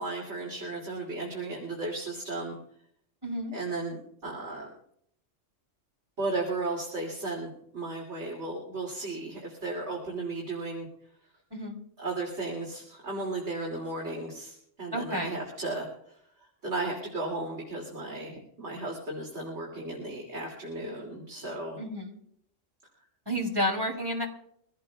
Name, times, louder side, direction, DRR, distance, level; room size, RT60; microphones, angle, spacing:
voice 1, 0.0-2.6 3.5-4.7 6.2-10.9 12.0-16.2 16.6-21.8, right 2 dB, 70° right, -2 dB, 3.1 m, -35 dB
voice 2, 3.2-3.5 11.5-11.8 14.9-15.4 21.8-22.2 23.3-24.3, equal, 20° right, 0 dB, 3.2 m, -31 dB
24.0 x 16.5 x 2.4 m, 0.70 s
omnidirectional pair, 1.2 m